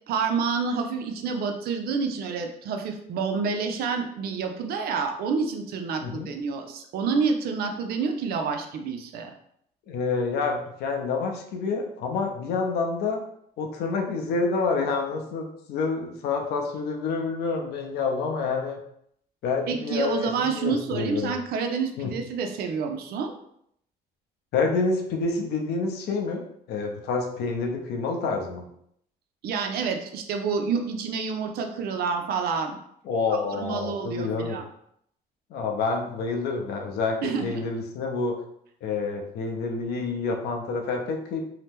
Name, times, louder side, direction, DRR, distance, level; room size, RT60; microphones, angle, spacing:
voice 1, 0.1-9.3 19.7-23.3 29.4-32.8 33.3-34.7 37.2-37.6, right 5 dB, 65° right, 5 dB, 0.5 m, -28 dB
voice 2, 9.9-13.2 13.6-18.8 19.4-21.3 22.0-22.1 24.5-28.6 33.1-34.6 35.5-38.4 38.8-41.4, left 4 dB, 75° left, 2 dB, 0.6 m, -28 dB
2.8 x 2.0 x 3.4 m, 0.71 s
cardioid pair, 110°, 17 cm